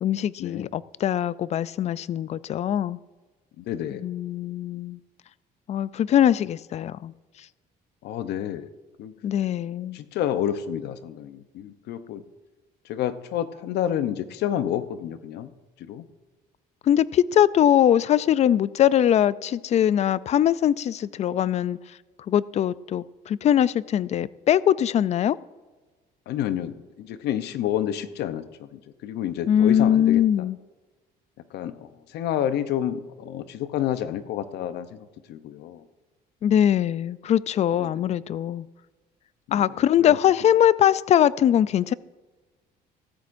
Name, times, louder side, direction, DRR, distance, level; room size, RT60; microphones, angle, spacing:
voice 1, 0.0-3.0 4.0-5.0 5.7-7.1 9.2-10.0 16.9-21.8 22.3-25.4 29.5-30.6 36.4-38.7 39.5-41.9, left 10 dB, 40° left, 0.4 m, -21 dB
voice 2, 3.6-4.0 8.0-8.7 9.0-9.1 9.9-12.2 12.9-15.5 15.9-16.0 26.3-30.2 31.5-35.0 35.3-35.8 37.8-37.9 39.5-39.6 40.0-40.2, left 10 dB, 75° left, 0.8 m, -29 dB
16.5 x 14.0 x 2.6 m
cardioid pair, 110°, 17 cm